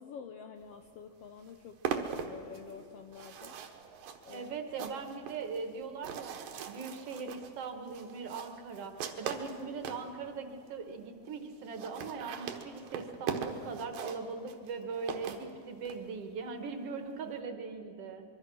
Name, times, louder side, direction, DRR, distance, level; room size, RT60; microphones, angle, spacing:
voice 1, 0.0-3.5 4.2-4.9, left 6 dB, 85° left, 5 dB, 1.3 m, -48 dB
sound 1, 0.9-1.0 1.2-10.1 10.7-10.8 11.0-11.1 11.3-11.4 11.6-16.0, right 7 dB, 85° right, 3.1 m, -40 dB
voice 2, 4.3-6.4 6.7-18.2, right 5 dB, 55° right, 6 dB, 2.0 m, -40 dB
25.0 x 23.0 x 6.3 m, 2.6 s
omnidirectional pair, 3.9 m